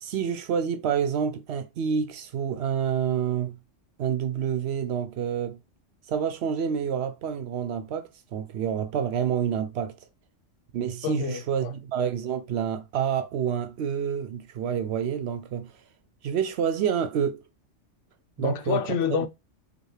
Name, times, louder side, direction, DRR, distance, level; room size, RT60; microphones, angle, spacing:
voice 1, 0.0-3.6 4.0-5.6 6.1-9.9 10.7-15.7 16.2-17.4 18.4-18.8, right 8 dB, 65° right, 0.8 m, -28 dB
voice 2, 11.0-11.7 18.4-19.3, left 8 dB, 80° left, 0.9 m, -28 dB
5.0 x 2.2 x 3.2 m
omnidirectional pair, 1.3 m